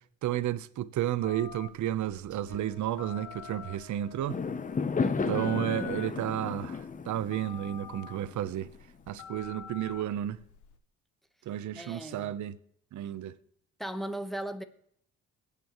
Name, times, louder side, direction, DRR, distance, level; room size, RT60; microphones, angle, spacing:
voice 1, 0.2-4.4 5.3-8.7 9.1-10.4 11.5-12.5 12.9-13.4, right 12 dB, 70° right, 0.9 m, -32 dB
Telephone, 1.2-10.8, left 9 dB, 90° left, 1.0 m, -48 dB
Wind instrument woodwind instrument, 2.5-6.9, left 4 dB, 55° left, 1.8 m, -54 dB
Fireworks, 4.3-8.8, left 5 dB, 25° left, 0.7 m, -33 dB
voice 2, 5.0-5.6 11.7-12.4 13.8-14.6, right 1 dB, ahead, 1.1 m, -37 dB
22.0 x 8.5 x 3.1 m
cardioid pair, 90°, 30 cm